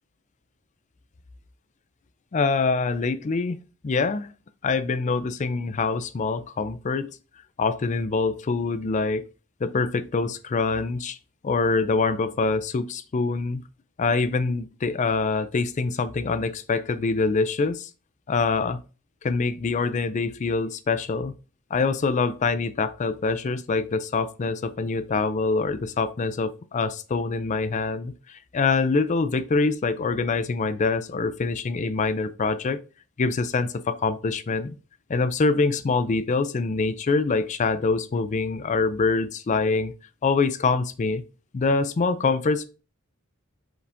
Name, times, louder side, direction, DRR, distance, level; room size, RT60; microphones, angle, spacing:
voice 1, 2.3-3.6 3.8-4.3 4.6-7.2 7.6-9.2 9.6-11.2 11.4-13.6 14.0-17.9 18.3-18.8 19.2-21.3 21.7-32.8 33.2-34.8 35.1-39.9 40.2-41.2 41.5-42.6, left 4 dB, 35° left, 0.4 m, -25 dB
5.0 x 3.4 x 2.5 m
head